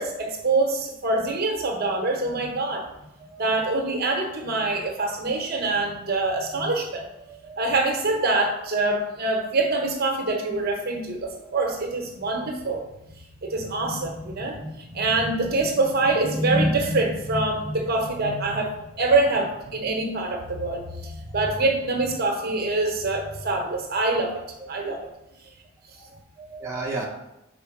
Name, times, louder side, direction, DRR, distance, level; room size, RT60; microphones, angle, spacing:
voice 1, 0.0-2.9 3.4-7.0 7.6-12.8 13.4-18.7 19.0-24.4 24.7-25.1, right 2 dB, 45° right, 3 dB, 1.0 m, -25 dB
voice 2, 3.2-3.6 7.3-7.7 10.4-10.5 11.4-11.5 17.9-18.0 20.0-20.1 21.0-21.2 24.6-25.0 26.0-27.1, right 3 dB, 15° right, -5 dB, 1.0 m, -37 dB
4.9 x 4.6 x 5.9 m, 0.90 s
head